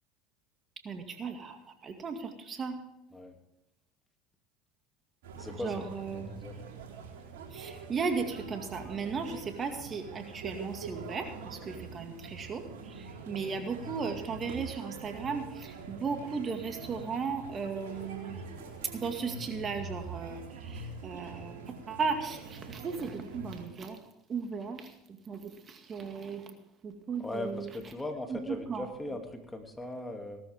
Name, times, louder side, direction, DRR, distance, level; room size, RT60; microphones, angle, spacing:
voice 1, 0.8-2.7 5.6-6.3 7.5-18.5 18.9-21.6 21.9-24.0 24.3-24.9 25.3-26.4 26.8-27.7 28.3-28.9, right 5 dB, 35° right, 5 dB, 2.2 m, -36 dB
sound 1, 5.2-23.7, right 4 dB, 80° right, 4.0 m, -44 dB
voice 2, 5.4-5.8 6.1-6.5 27.2-30.4, left 2 dB, 10° left, 4 dB, 2.7 m, -39 dB
18.0 x 13.0 x 3.7 m, 0.85 s
hypercardioid pair, 80°, 0 cm